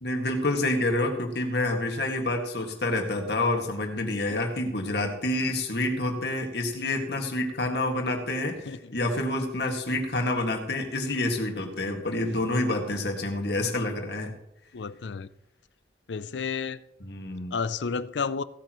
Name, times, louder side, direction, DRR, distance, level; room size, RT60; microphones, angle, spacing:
voice 1, 0.0-14.3 17.0-17.5, left 2 dB, 65° left, 2.1 m, -28 dB
voice 2, 14.7-15.3 16.1-16.8 17.5-18.4, left 5 dB, 85° left, 0.5 m, -31 dB
17.0 x 8.7 x 3.1 m
head